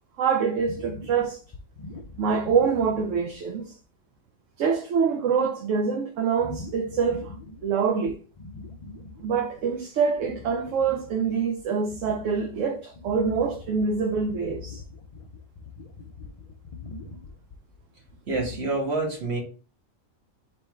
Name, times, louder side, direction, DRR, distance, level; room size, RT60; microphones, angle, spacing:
voice 1, 0.2-1.4 2.2-3.8 4.6-7.3 7.6-8.2 9.2-14.8, right 6 dB, 70° right, 0.9 m, -25 dB
sound 1, 0.6-3.6 4.1-4.2 4.6-5.0 6.4-7.8 8.1-9.8 10.1-18.7, left 3 dB, 65° left, 0.3 m, -43 dB
voice 2, 18.3-19.4, right 3 dB, 50° right, 1.5 m, -27 dB
3.4 x 3.1 x 4.4 m
omnidirectional pair, 1.4 m